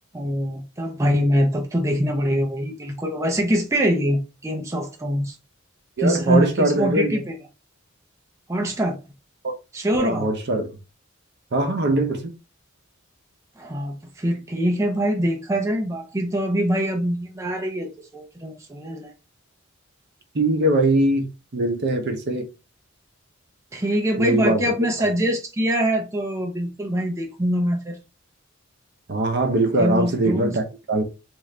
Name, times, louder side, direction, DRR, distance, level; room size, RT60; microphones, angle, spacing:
voice 1, 0.1-5.4 6.0-7.4 8.5-9.0 9.7-10.3 13.6-19.1 23.7-28.0 29.8-30.6, equal, 15° right, 0.4 m, -24 dB
voice 2, 6.0-7.2 9.4-9.5 9.9-10.6 11.5-12.3 20.3-21.3 21.5-22.4 24.2-24.6 25.0-25.1 29.1-31.0, right 2 dB, 55° right, 0.7 m, -21 dB
3.0 x 2.4 x 3.2 m
head